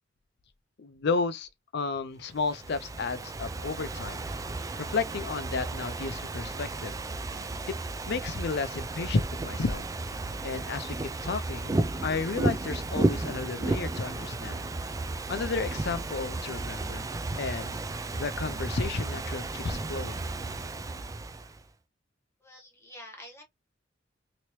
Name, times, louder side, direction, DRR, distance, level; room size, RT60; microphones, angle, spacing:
voice 1, 0.8-4.2 4.8-6.9 8.1-9.8 10.4-10.9 11.2-14.6 15.3-17.1 17.4-17.7 18.1-20.2, left 4 dB, 60° left, 0.5 m, -32 dB
Ocean / Fireworks, 2.3-21.6, right 2 dB, 15° right, 0.3 m, -33 dB
voice 2, 22.4-23.4, left 1 dB, 15° left, 1.3 m, -47 dB
3.0 x 2.9 x 3.0 m
head